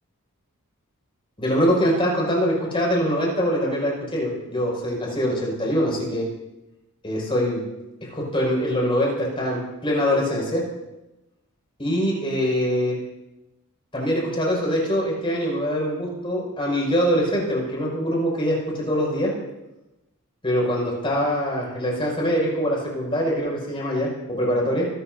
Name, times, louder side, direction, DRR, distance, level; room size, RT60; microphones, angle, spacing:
voice 1, 1.4-6.2 7.0-7.6 8.1-10.6 11.8-13.0 13.9-19.3 20.4-24.9, equal, 25° left, -3 dB, 5.6 m, -23 dB
26.5 x 12.5 x 2.7 m, 0.99 s
head